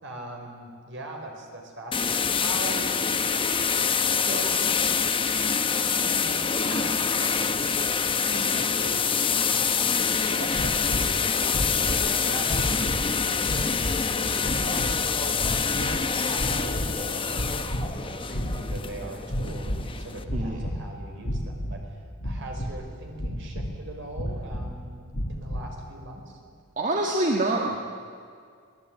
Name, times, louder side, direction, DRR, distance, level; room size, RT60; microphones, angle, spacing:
voice 1, 0.0-2.9 4.1-4.6 6.0-25.0 25.3-26.4, right 2 dB, 60° right, 2 dB, 4.9 m, -41 dB
sound 1, 1.9-20.2, left 6 dB, 25° left, 1.0 m, -26 dB
sound 2, 10.5-11.1 11.5-12.1 12.4-13.1 13.4-14.0 14.4-14.9 15.4-16.0 16.3-17.0 17.3-18.0 18.3-18.9 19.3-19.9 20.2-20.8 21.2-21.8 22.2-22.8 23.2-23.7 24.1-24.7 25.1-25.7, equal, 60° left, 2.5 m, -31 dB
voice 2, 26.8-27.8, right 2 dB, 40° right, 0 dB, 1.8 m, -25 dB
23.0 x 19.0 x 9.3 m, 2.2 s
head